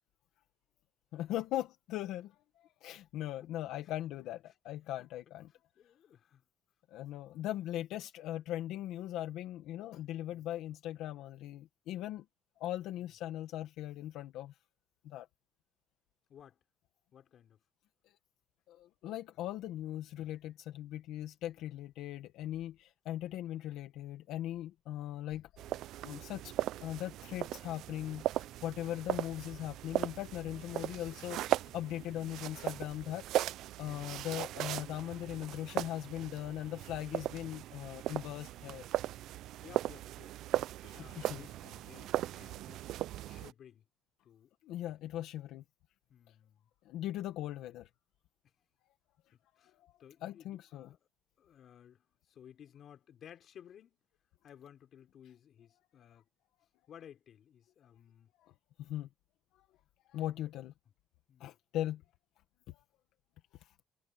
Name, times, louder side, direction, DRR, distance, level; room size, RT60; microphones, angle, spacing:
voice 1, 1.1-5.5 6.9-12.2 12.6-14.6 15.0-15.3 18.7-25.5 26.0-26.5 26.8-38.9 40.8-41.5 44.6-45.6 46.3-46.4 46.8-47.9 49.8-49.9 50.2-50.9 58.4-58.5 58.8-59.1 60.1-60.7 61.4-62.0 62.7-62.8 63.6-63.7, left 13 dB, 80° left, 1.3 m, -40 dB
voice 2, 5.5-6.4 13.0-13.1 16.3-16.6 17.1-17.6 33.8-34.2 39.6-40.3 40.9-42.9 43.3-43.8 44.2-44.5 44.9-45.0 46.1-46.7 49.3-51.0 51.4-54.0 54.4-56.2 56.9-58.3 61.3-61.6, left 9 dB, 50° left, 4.0 m, -57 dB
sound 1, 25.6-43.5, right 14 dB, 70° right, 0.4 m, -38 dB
cardioid pair, 145°, 0 cm